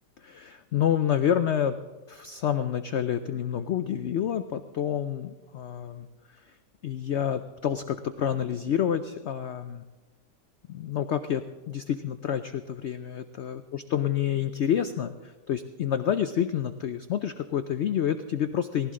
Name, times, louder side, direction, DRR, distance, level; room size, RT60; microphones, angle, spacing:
voice 1, 0.2-1.8 2.1-6.6 6.8-9.8 10.7-18.9, left 9 dB, 90° left, 10 dB, 0.6 m, -28 dB
19.5 x 15.0 x 3.7 m, 1.2 s
omnidirectional pair, 1.8 m